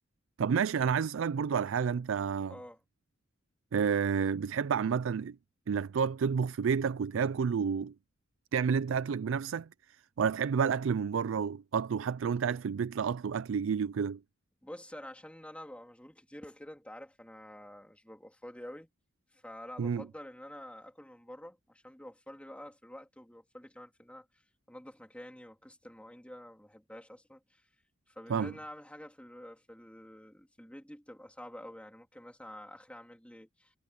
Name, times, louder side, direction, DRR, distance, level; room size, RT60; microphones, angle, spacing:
voice 1, 0.4-2.5 3.7-5.4 5.7-7.9 8.5-9.7 10.2-14.2 19.8-20.0 28.3-28.5, right 6 dB, 75° right, 0.4 m, -30 dB
voice 2, 2.5-2.8 14.6-18.9 19.3-24.4 24.7-27.6 28.1-33.7, left 1 dB, 5° left, 3.3 m, -48 dB
head